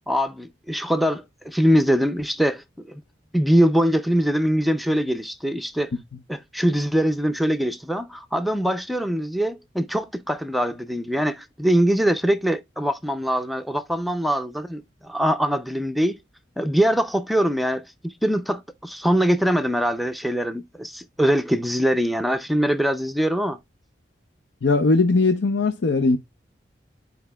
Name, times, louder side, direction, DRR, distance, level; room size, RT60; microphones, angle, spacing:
voice 1, 0.1-3.0 3.3-5.9 6.3-16.2 16.6-23.6, equal, ahead, 0.4 m, -23 dB
voice 2, 24.6-26.2, left 3 dB, 85° left, 0.6 m, -19 dB
12.0 x 4.7 x 2.2 m
head